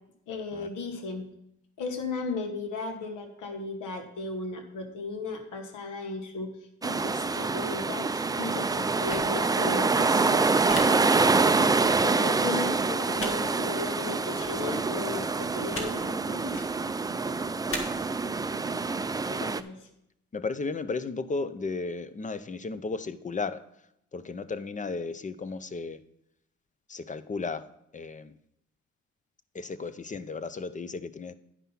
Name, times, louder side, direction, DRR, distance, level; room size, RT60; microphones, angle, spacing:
voice 1, 0.3-1.3 1.8-6.5 6.8-11.3 12.0-16.7 19.3-19.9, left 4 dB, 85° left, 5 dB, 1.6 m, -36 dB
sound 1, 6.8-19.6, right 4 dB, 15° right, 0.3 m, -26 dB
sound 2, 9.1-9.3 10.7-10.8 11.9-12.0 13.2-13.3 14.4-14.5 15.7-15.9 16.4-16.7 17.7-17.8, left 2 dB, 45° left, 1.8 m, -35 dB
voice 2, 20.3-23.6 24.1-26.0 26.9-27.7 27.9-28.3 29.5-31.3, left 4 dB, 25° left, 14 dB, 0.6 m, -34 dB
9.9 x 5.5 x 5.8 m, 0.79 s
cardioid pair, 90°, 30 cm